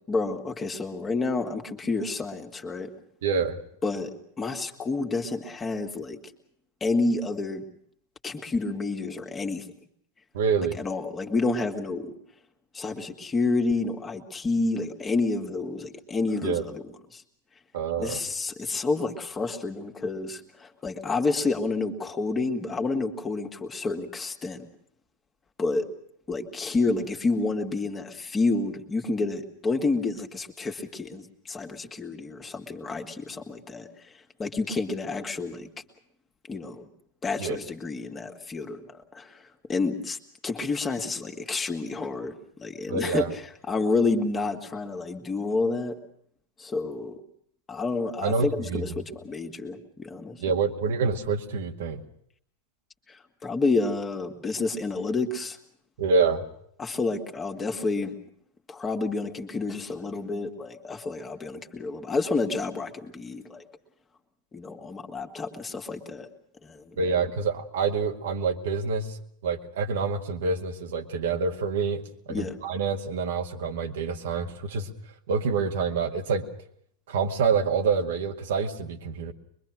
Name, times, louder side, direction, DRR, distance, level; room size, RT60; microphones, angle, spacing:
voice 1, 0.1-2.9 3.8-6.2 6.8-7.7 8.2-9.6 10.8-12.1 12.7-16.8 17.1-17.2 18.0-24.7 25.6-25.9 26.3-35.7 36.5-36.9 37.2-40.2 40.4-42.3 42.6-46.0 46.6-47.2 47.7-50.4 53.1-55.6 56.8-58.1 58.7-63.6 64.5-66.3 66.6-67.0 72.3-72.6, left 3 dB, 20° left, 4 dB, 2.2 m, -29 dB
voice 2, 3.2-3.6 10.3-10.8 16.4-16.6 17.7-18.2 37.4-37.6 42.9-43.3 48.2-48.8 50.4-52.0 56.0-56.5 67.0-69.2 69.4-74.9 75.3-76.5 77.1-79.3, right 5 dB, 60° right, 4 dB, 2.0 m, -27 dB
24.0 x 23.0 x 6.2 m, 0.69 s
figure-of-eight pair, 90°, 0 cm